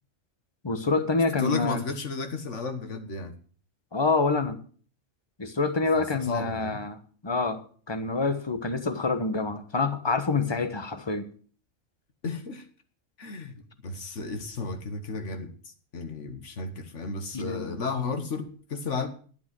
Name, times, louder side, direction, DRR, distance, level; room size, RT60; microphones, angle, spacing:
voice 1, 0.6-1.8 3.9-4.6 5.4-7.0 7.2-7.6 7.9-11.3 17.3-17.7, left 3 dB, 20° left, 10 dB, 1.1 m, -26 dB
voice 2, 1.4-3.3 6.1-6.8 12.2-12.7 13.2-19.1, left 4 dB, 65° left, 8 dB, 1.7 m, -33 dB
11.0 x 9.2 x 6.0 m, 0.43 s
omnidirectional pair, 1.3 m